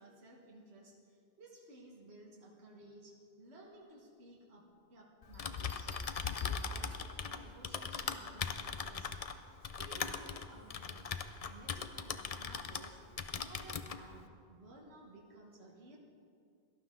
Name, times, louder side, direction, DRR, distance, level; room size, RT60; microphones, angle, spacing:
voice 1, 0.0-16.0, right 1 dB, 70° right, -2 dB, 1.7 m, -56 dB
Typing, 5.2-12.9 13.2-14.0, left 6 dB, 45° left, 0.5 m, -39 dB
sound 1, 5.3-7.3 8.9-9.2, left 1 dB, 15° left, 1.1 m, -58 dB
18.0 x 12.0 x 3.7 m, 2.5 s
omnidirectional pair, 1.1 m